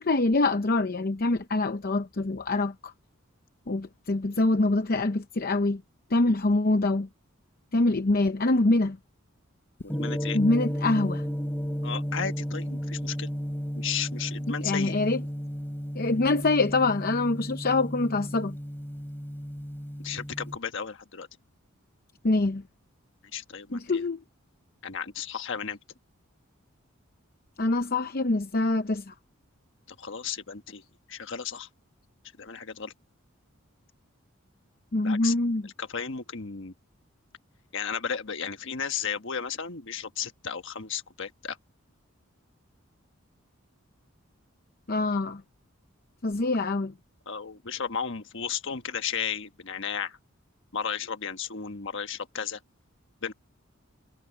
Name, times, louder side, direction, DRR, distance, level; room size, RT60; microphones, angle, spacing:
voice 1, 0.0-2.9 3.7-5.8 6.1-7.1 7.7-9.0 10.3-11.2 14.6-15.2 16.0-18.6 22.2-22.6 23.7-24.2 27.6-29.1 34.9-35.7 44.9-45.4 46.2-46.9, left 2 dB, 45° left, 0.7 m, -25 dB
voice 2, 9.9-10.4 11.8-13.3 13.7-15.0 20.0-21.3 23.3-24.0 24.8-25.8 29.9-30.8 31.1-31.7 32.4-32.9 35.0-35.3 35.8-36.7 37.7-41.6 47.3-50.2 50.7-52.6 53.2-53.3, left 7 dB, 60° left, 1.4 m, -34 dB
Gong, 9.9-20.6, equal, 10° left, 3.4 m, -33 dB
head